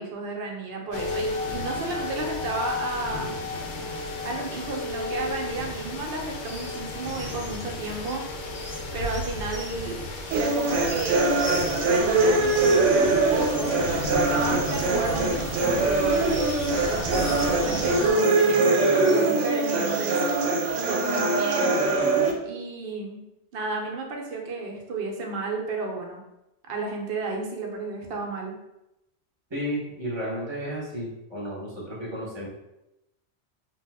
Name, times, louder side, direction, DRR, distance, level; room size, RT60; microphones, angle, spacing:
voice 1, 0.0-3.4 4.2-8.3 8.9-10.0 10.3-11.2 11.8-13.8 14.1-16.3 16.9-20.2 20.7-21.8 22.4-23.2 23.5-26.2 26.7-28.6, right 3 dB, 60° right, 0 dB, 0.8 m, -32 dB
sound 1, 0.9-18.1, left 2 dB, 75° left, 0.9 m, -33 dB
sound 2, 6.4-6.8 7.0-12.0 12.4-17.7 18.0-19.3, equal, 20° left, 0.4 m, -42 dB
sound 3, 10.3-22.3, right 3 dB, 90° right, 0.9 m, -23 dB
voice 2, 29.5-32.5, equal, 25° right, -6 dB, 0.9 m, -32 dB
2.9 x 2.1 x 3.3 m, 0.90 s
omnidirectional pair, 1.2 m